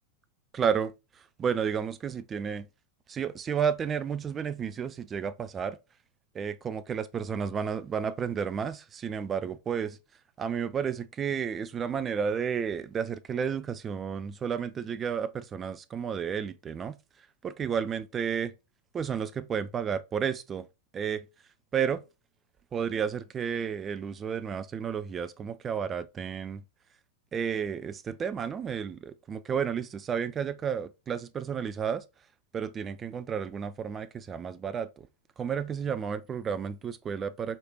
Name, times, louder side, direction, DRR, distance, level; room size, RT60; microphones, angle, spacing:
voice 1, 0.5-0.9 1.4-2.7 3.1-5.8 6.3-10.0 10.4-17.0 17.4-18.5 18.9-20.7 20.9-21.2 21.7-22.0 22.7-26.6 27.3-32.0 32.5-34.9 35.4-37.6, right 7 dB, 25° right, 0.4 m, -32 dB
4.3 x 3.2 x 2.3 m
figure-of-eight pair, 90°, 0 cm